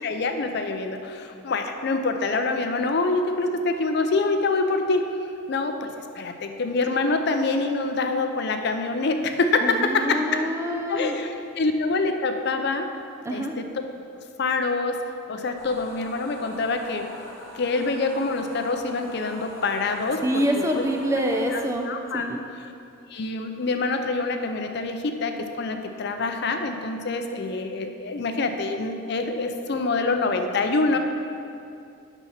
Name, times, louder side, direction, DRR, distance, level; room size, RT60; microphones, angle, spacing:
voice 1, 0.0-5.1 5.5-10.4 10.9-12.9 13.3-13.7 14.4-15.0 15.3-17.1 17.5-20.8 21.5-22.2 22.6-22.7 23.1-31.0, left 3 dB, 55° left, 6 dB, 0.5 m, -26 dB
voice 2, 9.6-11.1 13.2-13.5 20.2-21.9 22.1-22.4, equal, 15° right, 2 dB, 0.5 m, -26 dB
sound 1, 15.6-21.6, left 1 dB, 15° left, 1.8 m, -43 dB
6.8 x 5.9 x 5.7 m, 2.6 s
head